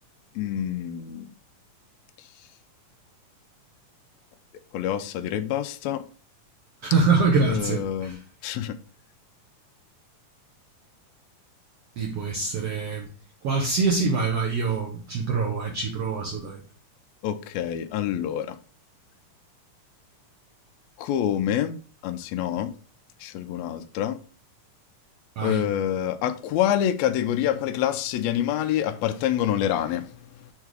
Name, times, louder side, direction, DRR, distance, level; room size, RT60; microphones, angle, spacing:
voice 1, 0.3-1.3 4.7-6.0 7.4-8.2 8.4-8.8 17.2-18.6 21.0-22.7 23.2-24.2 25.4-30.5, left 10 dB, 80° left, 1.6 m, -27 dB
voice 2, 6.8-8.1 12.0-13.1 13.4-16.6 25.4-25.7, right 4 dB, 65° right, 1.7 m, -24 dB
6.5 x 3.6 x 4.7 m
omnidirectional pair, 3.7 m